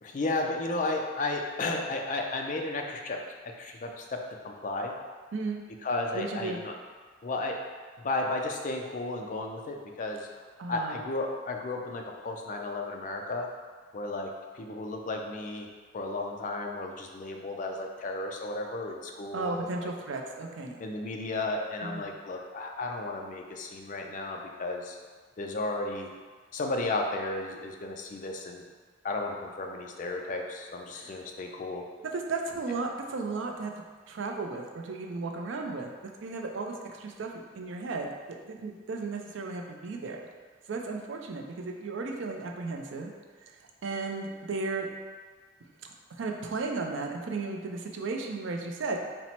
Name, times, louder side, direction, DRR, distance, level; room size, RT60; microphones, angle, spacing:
voice 1, 0.0-4.9 5.8-6.7 7.2-7.6 8.0-10.3 10.7-13.5 13.9-15.7 15.9-19.9 20.8-25.0 25.4-26.1 26.5-28.6 29.0-31.8, left 2 dB, 40° left, 2 dB, 0.4 m, -33 dB
voice 2, 6.1-6.6 10.6-11.0 19.3-20.8 21.8-22.1 30.9-31.2 32.0-33.7 34.1-35.9 36.2-37.3 37.5-38.1 38.4-40.2 40.7-43.1 43.4-43.5 43.8-44.9 46.2-49.0, right 3 dB, 75° right, 2 dB, 0.4 m, -34 dB
4.2 x 2.0 x 4.2 m, 1.5 s
head